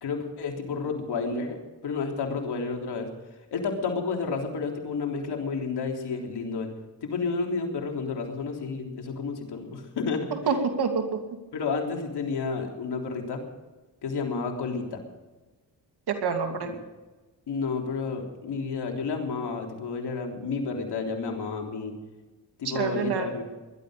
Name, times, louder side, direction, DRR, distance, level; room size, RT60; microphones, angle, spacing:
voice 1, 0.0-1.6 1.8-3.1 3.5-6.7 7.0-10.3 11.5-13.4 14.0-15.0 16.6-16.8 17.5-21.9 22.6-23.4, left 4 dB, 75° left, 2 dB, 3.5 m, -31 dB
voice 2, 10.3-11.2 16.1-16.7 22.6-23.3, right 5 dB, 70° right, 5 dB, 2.6 m, -27 dB
20.0 x 12.5 x 5.1 m, 1.2 s
cardioid pair, 60°, 40 cm